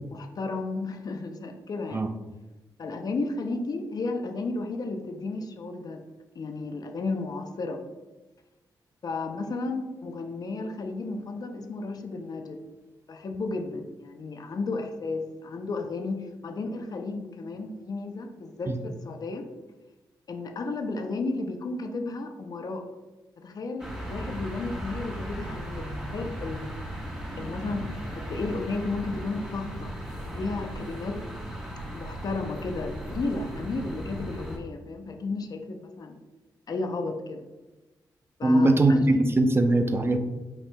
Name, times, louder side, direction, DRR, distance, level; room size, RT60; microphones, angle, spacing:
voice 1, 0.1-2.1 2.8-6.0 6.4-7.8 9.0-12.6 13.1-19.5 20.3-22.9 23.4-26.8 27.4-29.9 30.3-31.2 31.9-36.2 36.7-37.5 38.4-39.0, left 3 dB, 55° left, 5 dB, 0.6 m, -33 dB
sound 1, 23.8-34.6, right 1 dB, 10° right, 1.2 m, -37 dB
voice 2, 38.4-40.2, right 2 dB, 30° right, 7 dB, 0.5 m, -21 dB
5.8 x 4.2 x 2.2 m, 1.1 s
cardioid pair, 65°, 8 cm